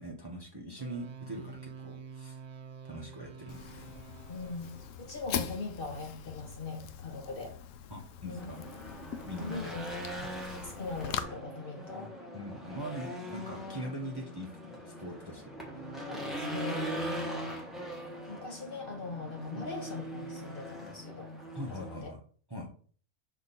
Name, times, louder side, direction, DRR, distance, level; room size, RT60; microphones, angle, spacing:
voice 1, 0.0-2.4 2.8-3.9 7.9-8.6 9.2-9.8 12.3-15.4 19.5-19.7 21.5-22.2 22.5-22.7, equal, 20° right, 0 dB, 1.0 m, -42 dB
sound 1, 0.8-5.2, right 6 dB, 60° right, 0.9 m, -48 dB
Fire, 3.5-11.2, left 9 dB, 75° left, 0.9 m, -42 dB
voice 2, 4.3-7.6 8.2-8.5 9.3-9.9 10.5-12.1 13.1-13.2 16.1-17.5 18.3-21.3 21.7-22.1, left 3 dB, 45° left, 2 dB, 1.2 m, -41 dB
Race car auto racing / Engine, 8.4-22.0, equal, ahead, 1.5 m, -41 dB
6.4 x 3.6 x 4.1 m, 0.43 s
omnidirectional pair, 1.4 m